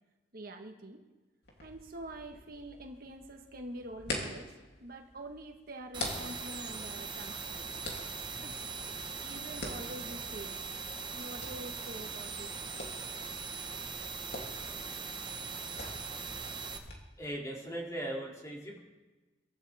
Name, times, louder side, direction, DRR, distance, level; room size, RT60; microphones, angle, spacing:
voice 1, 0.3-1.0 1.6-4.5 4.8-7.7 8.4-8.7 9.2-10.6 11.1-12.5, right 1 dB, 55° right, 4 dB, 1.4 m, -46 dB
sound 1, 1.4-16.9, left 2 dB, 65° left, 3.0 m, -46 dB
sound 2, 5.9-16.8, right 5 dB, 25° right, 1.2 m, -40 dB
voice 2, 17.2-18.8, right 1 dB, 20° left, -2 dB, 2.7 m, -38 dB
23.5 x 13.0 x 3.5 m, 1.2 s
head